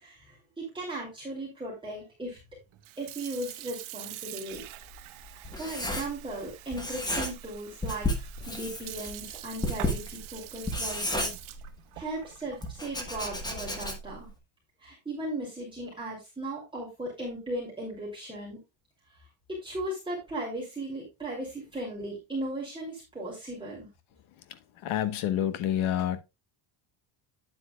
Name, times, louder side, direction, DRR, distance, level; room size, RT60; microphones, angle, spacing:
voice 1, 0.0-2.4 3.0-4.6 5.6-11.3 11.9-14.3 14.8-18.6 19.5-23.9, right 1 dB, 10° right, 2.7 m, -37 dB
Sink (filling or washing) / Fill (with liquid), 2.7-14.3, right 15 dB, 85° right, 1.2 m, -45 dB
Writing, 4.6-6.4 6.7-7.6 7.8-12.0 12.6-14.2, left 1 dB, 10° left, 1.2 m, -33 dB
voice 2, 24.8-26.2, left 10 dB, 75° left, 1.2 m, -28 dB
9.2 x 8.1 x 2.3 m
cardioid pair, 180°, 48 cm